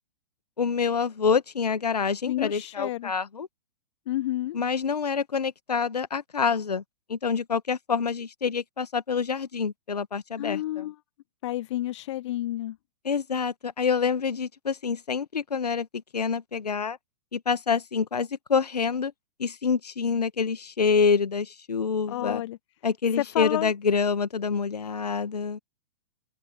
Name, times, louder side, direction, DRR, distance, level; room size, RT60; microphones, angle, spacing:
voice 1, 0.6-3.5 4.5-6.8 7.1-10.9 13.0-15.9 16.1-17.0 17.3-19.1 19.4-22.4 22.8-25.6, left 5 dB, 70° left, 1.8 m, -27 dB
voice 2, 2.3-3.1 4.1-4.6 10.4-10.9 11.4-12.8 22.1-22.6 23.2-23.7, left 14 dB, 45° left, 1.3 m, -30 dB
open air
figure-of-eight pair, 110°, 21 cm